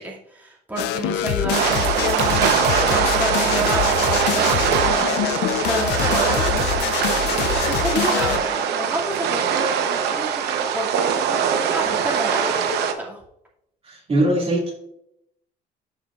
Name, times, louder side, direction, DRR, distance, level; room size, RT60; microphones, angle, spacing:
voice 1, 0.0-6.6 7.7-13.2, right 1 dB, 10° right, -5 dB, 2.3 m, -30 dB
sound 1, 0.8-8.6, left 13 dB, 85° left, 0.4 m, -25 dB
sound 2, 1.5-12.9, right 8 dB, 80° right, 0.9 m, -22 dB
voice 2, 13.8-14.7, right 1 dB, 35° right, -2 dB, 2.3 m, -21 dB
13.0 x 5.0 x 2.4 m, 0.76 s
cardioid pair, 110°, 17 cm